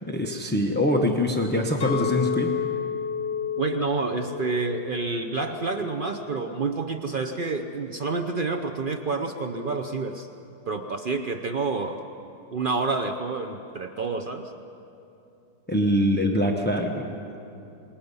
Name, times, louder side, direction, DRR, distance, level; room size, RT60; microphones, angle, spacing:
voice 1, 0.0-2.6 15.7-17.4, left 1 dB, 10° left, 2 dB, 0.6 m, -24 dB
Chink clink, 1.8-6.1 6.6-7.0, left 7 dB, 85° left, 1.9 m, -31 dB
voice 2, 3.6-10.3 10.7-12.0 12.5-14.5, right 4 dB, 85° right, 6 dB, 0.4 m, -28 dB
26.5 x 21.0 x 5.5 m, 2.9 s
omnidirectional pair, 2.0 m